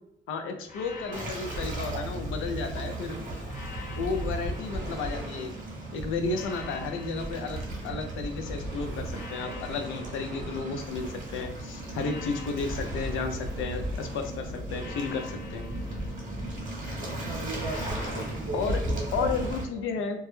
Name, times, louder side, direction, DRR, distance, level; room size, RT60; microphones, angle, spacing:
voice 1, 0.3-3.2 3.9-5.5 5.9-15.7 18.5-18.8 19.1-20.2, left 4 dB, 85° left, 6 dB, 0.4 m, -33 dB
sound 1, 0.7-2.8 3.5-5.6 6.3-8.5 9.1-11.2 11.9-14.1 14.7-16.9 17.6-19.6, left 3 dB, 40° left, 0.7 m, -47 dB
Waves surf, 1.1-19.6, right 1 dB, 40° right, 0.9 m, -36 dB
sound 2, 10.8-19.5, equal, ahead, 0.6 m, -41 dB
voice 2, 17.0-19.3, right 1 dB, 60° right, -1 dB, 0.6 m, -37 dB
2.2 x 2.0 x 3.0 m, 0.80 s
cardioid pair, 90°, 20 cm